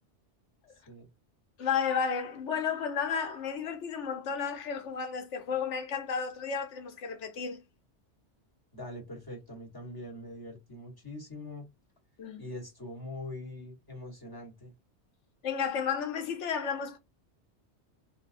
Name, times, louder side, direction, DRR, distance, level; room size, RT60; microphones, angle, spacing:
voice 1, 1.6-7.6 12.2-12.4 15.4-17.0, left 6 dB, 85° left, 1.1 m, -32 dB
voice 2, 8.7-11.7 12.4-14.7, left 1 dB, 20° left, 1.3 m, -43 dB
3.6 x 2.6 x 2.5 m
omnidirectional pair, 1.2 m